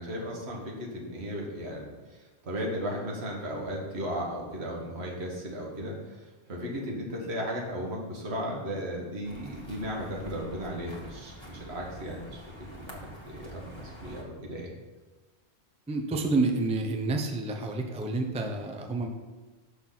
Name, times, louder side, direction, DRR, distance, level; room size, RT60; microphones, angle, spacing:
voice 1, 0.0-12.4 12.7-14.7, equal, 75° right, -1 dB, 1.6 m, -36 dB
sound 1, 9.2-14.2, equal, 25° left, 1.1 m, -47 dB
voice 2, 15.9-19.1, right 3 dB, 10° right, 3 dB, 0.3 m, -29 dB
6.0 x 5.8 x 3.8 m, 1.2 s
omnidirectional pair, 1.1 m